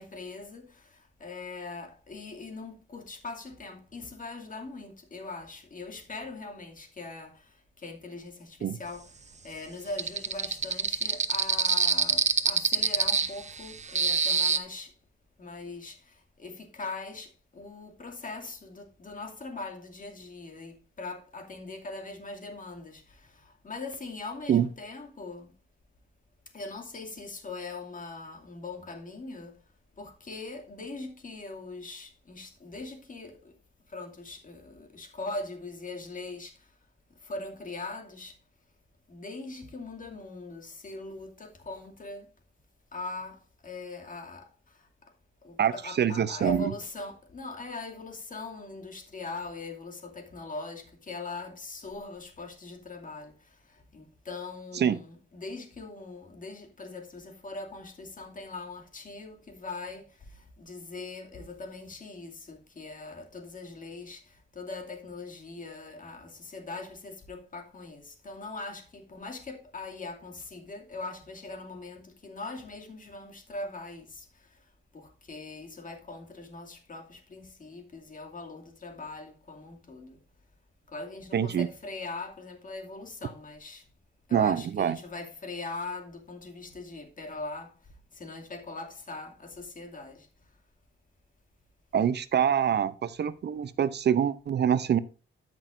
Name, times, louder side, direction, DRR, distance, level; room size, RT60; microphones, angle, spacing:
voice 1, 0.0-9.1 9.4-14.9 15.4-25.5 26.5-29.6 30.0-33.5 33.9-36.6 37.2-38.4 39.1-42.3 42.9-44.5 44.8-44.9 45.4-53.3 53.7-74.3 74.9-80.2 80.9-83.8 84.3-87.7 88.1-90.3, left 3 dB, 40° left, 2.5 m, -41 dB
sound 1, 10.0-14.6, right 5 dB, 35° right, 0.9 m, -25 dB
voice 2, 45.6-46.7 54.8-55.0 81.3-81.7 84.3-85.0 91.9-95.0, right 8 dB, 55° right, 0.6 m, -25 dB
13.5 x 6.1 x 2.6 m
cardioid pair, 70°, 21 cm